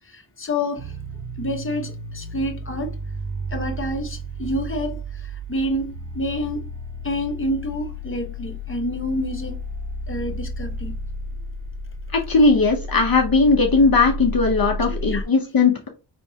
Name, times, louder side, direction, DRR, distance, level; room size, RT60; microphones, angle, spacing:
voice 1, 0.1-0.9 1.4-2.9 3.5-6.6 7.0-9.6 10.1-10.9 14.9-15.2, left 1 dB, 30° left, 1.2 m, -28 dB
sound 1, 0.8-15.2, equal, 45° right, 0.9 m, -32 dB
voice 2, 12.1-15.9, left 3 dB, 50° left, 0.9 m, -18 dB
5.2 x 3.4 x 2.8 m
wide cardioid pair, 110°, 44 cm